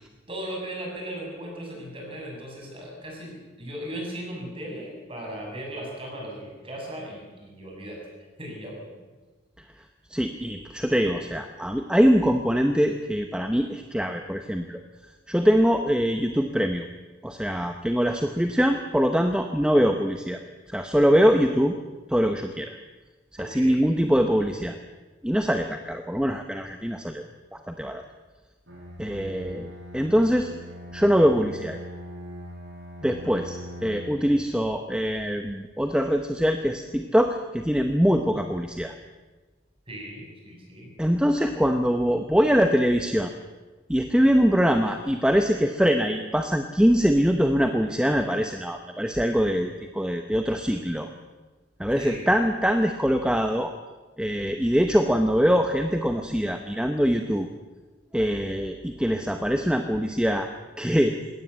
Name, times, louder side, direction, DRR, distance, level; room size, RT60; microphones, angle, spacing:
voice 1, 0.3-8.0 8.4-8.9 23.4-23.8 39.9-40.9 52.0-52.3, right 1 dB, 25° right, 0 dB, 7.0 m, -37 dB
voice 2, 10.1-14.8 15.3-16.9 17.2-20.4 20.7-21.7 22.1-22.8 23.4-24.8 25.2-27.2 27.5-28.0 29.0-30.5 30.9-31.8 33.0-39.0 41.0-43.3 43.9-51.1 51.8-53.7 54.2-57.5 58.1-60.5 60.8-61.2, equal, 5° right, 6 dB, 0.9 m, -23 dB
Bowed string instrument, 28.7-34.3, equal, 75° right, 7.4 m, -41 dB
20.5 x 17.5 x 8.2 m, 1.3 s
head